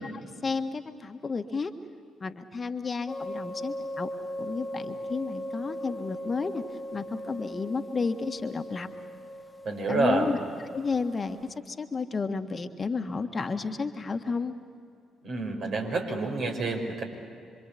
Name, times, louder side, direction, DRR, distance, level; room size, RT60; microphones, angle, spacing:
voice 1, 0.0-1.7 2.2-4.1 4.4-6.6 6.9-8.9 9.9-10.4 10.7-11.4 11.7-14.5, left 4 dB, 40° left, 7 dB, 1.6 m, -31 dB
sound 1, 3.1-11.5, equal, 10° left, 1.3 m, -39 dB
voice 2, 9.6-10.3 15.2-17.0, right 3 dB, 60° right, 1 dB, 5.7 m, -28 dB
27.0 x 25.0 x 8.6 m, 2.3 s
hypercardioid pair, 45°, 0 cm